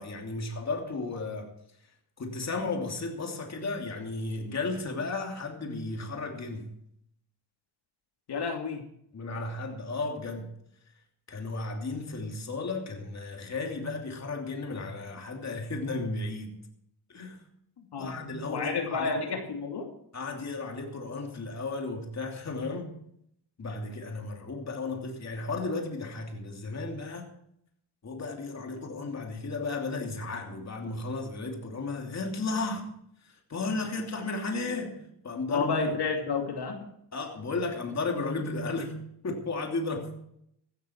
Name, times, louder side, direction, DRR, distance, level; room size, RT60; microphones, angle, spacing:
voice 1, 0.0-1.5 2.2-6.7 9.1-10.5 11.3-16.7 17.1-17.4 18.0-19.4 20.1-23.0 23.6-27.3 28.0-32.9 33.2-36.0 37.1-40.1, left 3 dB, 40° left, 2.9 m, -34 dB
voice 2, 8.3-8.8 17.8-18.1 18.4-19.9 35.5-36.9, left 4 dB, 65° left, 2.6 m, -30 dB
15.5 x 12.5 x 4.5 m
cardioid pair, 120°, 43 cm